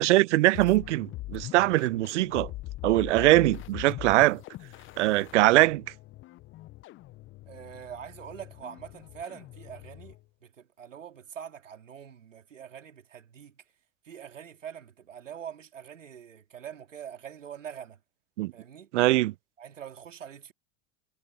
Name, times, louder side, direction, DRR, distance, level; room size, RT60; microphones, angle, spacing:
voice 1, 0.0-2.5 2.8-4.4 5.0-5.8 18.4-18.5 18.9-19.3, right 17 dB, 70° right, 0.8 m, -22 dB
sound 1, 0.5-10.2, left 17 dB, 35° left, 0.6 m, -42 dB
voice 2, 7.5-10.2 10.4-13.6 14.0-18.0 18.5-18.9 19.6-20.5, right 8 dB, 85° right, 3.5 m, -44 dB
hypercardioid pair, 90°, 37 cm